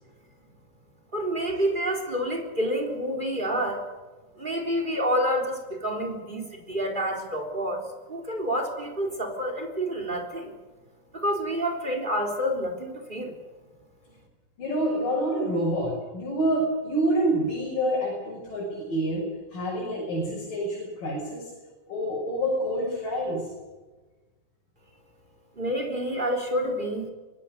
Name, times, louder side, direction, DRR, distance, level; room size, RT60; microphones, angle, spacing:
voice 1, 1.1-3.8 4.4-10.5 11.1-13.3 25.6-27.1, equal, 15° right, 4 dB, 3.6 m, -28 dB
voice 2, 14.6-21.5 21.9-23.4, right 1 dB, 65° left, -4 dB, 8.4 m, -27 dB
25.0 x 20.5 x 6.7 m, 1.2 s
omnidirectional pair, 4.1 m